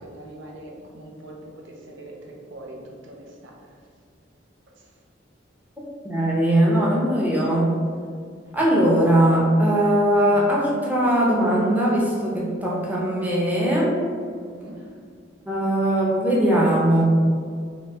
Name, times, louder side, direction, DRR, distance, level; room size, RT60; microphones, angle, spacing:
voice 1, 0.0-3.5 14.3-14.8, right 1 dB, 90° right, 0 dB, 0.6 m, -42 dB
voice 2, 6.0-7.8 8.5-13.9 15.5-17.0, right 1 dB, 10° right, -5 dB, 0.6 m, -20 dB
3.0 x 2.8 x 3.4 m, 2.1 s
head